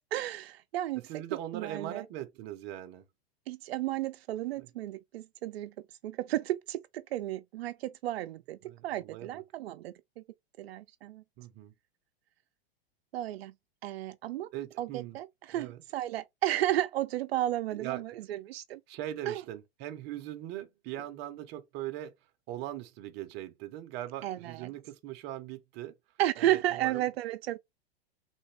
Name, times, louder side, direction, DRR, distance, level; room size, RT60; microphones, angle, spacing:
voice 1, 0.1-1.2 1.5-2.0 3.5-5.7 6.0-6.8 7.1-10.2 10.6-11.2 13.1-13.5 13.8-14.5 14.8-18.8 19.3-19.4 24.2-24.7 26.2-27.6, right 14 dB, 75° right, 0.5 m, -33 dB
voice 2, 1.1-3.0 4.6-4.7 8.6-9.4 11.4-11.7 14.5-15.2 15.5-15.8 17.7-18.0 18.9-22.1 22.5-26.0 26.4-27.1, right 13 dB, 35° right, 0.7 m, -40 dB
3.3 x 2.6 x 3.2 m
hypercardioid pair, 135°, 31 cm